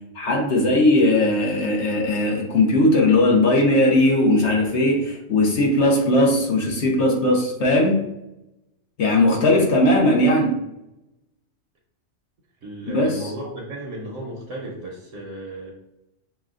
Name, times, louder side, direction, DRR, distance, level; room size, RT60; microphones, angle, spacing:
voice 1, 0.2-8.0 9.0-10.5 12.9-13.3, left 1 dB, 60° left, -1 dB, 1.1 m, -18 dB
voice 2, 12.6-15.8, right 1 dB, 70° right, -1 dB, 1.1 m, -34 dB
6.4 x 2.3 x 2.4 m, 0.87 s
omnidirectional pair, 1.4 m